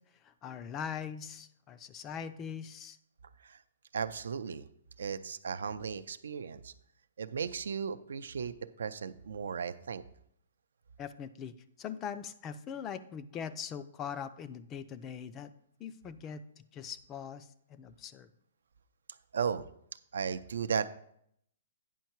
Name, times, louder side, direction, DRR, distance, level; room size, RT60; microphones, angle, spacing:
voice 1, 0.2-3.0 11.0-15.5 15.8-18.3, left 7 dB, 20° left, 12 dB, 0.4 m, -42 dB
voice 2, 3.9-4.7 5.0-6.7 7.2-10.0 19.3-19.7 20.1-20.9, right 6 dB, 80° right, 13 dB, 0.5 m, -35 dB
9.1 x 5.6 x 4.5 m, 0.69 s
hypercardioid pair, 160°, 0 cm